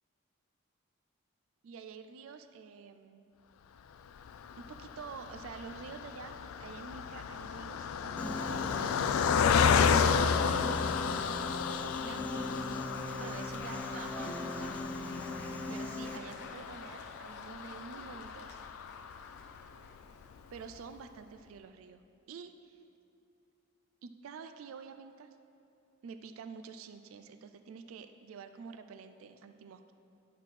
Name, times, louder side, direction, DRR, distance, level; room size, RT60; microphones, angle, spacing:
voice 1, 1.6-3.3 4.6-9.1 9.6-11.7 12.0-12.7 13.2-14.9 15.3-18.6 20.5-22.0 22.3-22.8 24.0-25.3 26.0-29.9, right 5 dB, 75° right, 9 dB, 0.3 m, -48 dB
Car passing by, 4.2-19.7 20.2-20.3 20.6-20.8, left 6 dB, 80° left, 0.3 m, -32 dB
Piano, 8.2-16.2, left 1 dB, 5° left, 0.3 m, -40 dB
Applause, 12.2-21.1, left 3 dB, 55° left, 0.7 m, -52 dB
11.0 x 5.9 x 3.2 m, 2.6 s
head